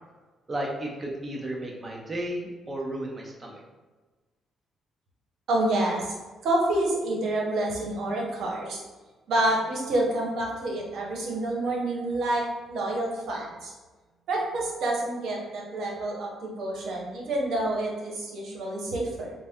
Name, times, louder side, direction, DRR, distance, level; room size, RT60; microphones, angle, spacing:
voice 1, 0.5-3.6, right 1 dB, 25° right, -1 dB, 0.6 m, -33 dB
voice 2, 5.5-6.1 6.4-8.8 9.3-12.4 12.7-13.7 14.3-19.3, right 1 dB, 75° right, -2 dB, 0.9 m, -28 dB
3.9 x 2.1 x 3.6 m, 1.3 s
cardioid pair, 90°, 0 cm